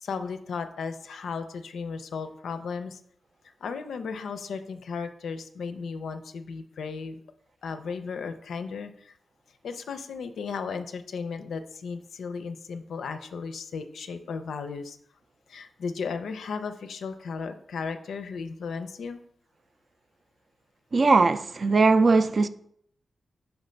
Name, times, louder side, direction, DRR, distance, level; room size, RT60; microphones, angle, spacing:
voice 1, 0.0-3.0 3.6-7.2 7.6-9.1 9.6-15.0 15.5-19.2, left 5 dB, 85° left, 0.5 m, -35 dB
voice 2, 20.9-22.5, right 3 dB, 40° right, 0.3 m, -20 dB
6.0 x 3.2 x 5.1 m
wide cardioid pair, 135°, 0 cm